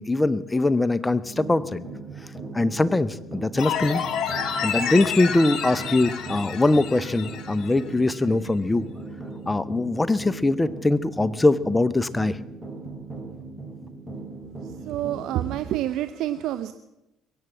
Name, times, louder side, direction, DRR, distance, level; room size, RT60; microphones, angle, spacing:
voice 1, 0.0-1.8 2.5-4.0 4.6-8.9 9.5-12.4, left 2 dB, 15° left, 16 dB, 0.7 m, -22 dB
sound 1, 1.2-15.6, right 3 dB, 10° right, 4.7 m, -38 dB
sound 2, 3.6-7.8 8.1-8.2, left 7 dB, 55° left, 2.1 m, -29 dB
voice 2, 14.6-16.7, right 13 dB, 65° right, 11 dB, 0.6 m, -28 dB
22.0 x 8.9 x 7.2 m, 0.94 s
hypercardioid pair, 55°, 0 cm